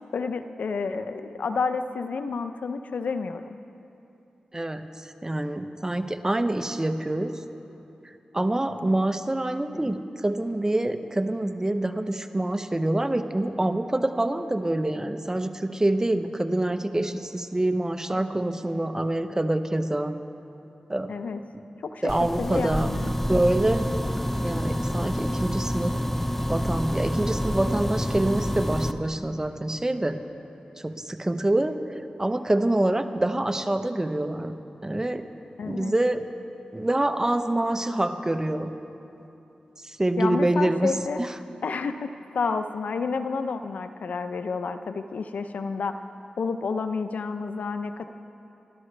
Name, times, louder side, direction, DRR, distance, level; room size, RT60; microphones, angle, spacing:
voice 1, 0.1-3.6 21.1-21.4 21.8-22.1 22.4-23.1 35.6-35.9 40.2-41.2 41.6-46.0 46.4-48.0, left 4 dB, 85° left, 9 dB, 0.6 m, -30 dB
voice 2, 4.5-7.4 8.3-20.2 20.9-21.1 22.0-23.9 24.4-26.0 26.5-30.2 30.8-31.8 32.2-34.6 34.8-35.3 35.7-36.3 36.7-38.7 39.8-40.9 41.2-41.3, right 1 dB, 20° right, 8 dB, 0.9 m, -26 dB
sound 1, 22.1-28.9, equal, 10° left, 0.7 m, -28 dB
28.5 x 12.5 x 3.4 m, 2.8 s
cardioid pair, 50°, 3 cm